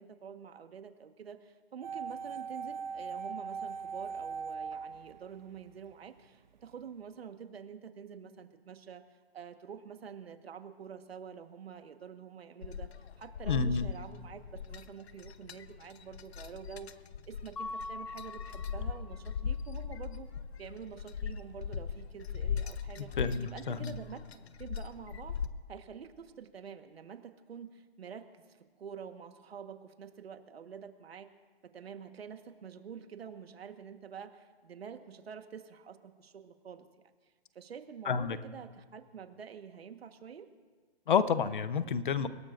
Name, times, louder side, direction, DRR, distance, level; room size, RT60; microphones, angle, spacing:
voice 1, 0.0-14.4 14.7-16.9 17.2-20.3 20.6-23.1 23.4-24.2 24.6-25.3 25.7-31.3 31.7-36.9 37.5-40.5, right 7 dB, 70° right, 7 dB, 1.5 m, -47 dB
sound 1, 1.8-5.9 6.2-6.3, right 5 dB, 45° right, 0.5 m, -40 dB
sound 2, 12.6-25.5, left 7 dB, 80° left, 1.0 m, -39 dB
voice 2, 13.5-13.9 23.2-23.9 38.1-38.4 41.1-42.3, left 6 dB, 50° left, 13 dB, 0.8 m, -29 dB
Mallet percussion, 17.6-19.4, left 3 dB, 35° left, 0.4 m, -43 dB
29.0 x 18.0 x 2.6 m, 1.5 s
hypercardioid pair, 180°, 32 cm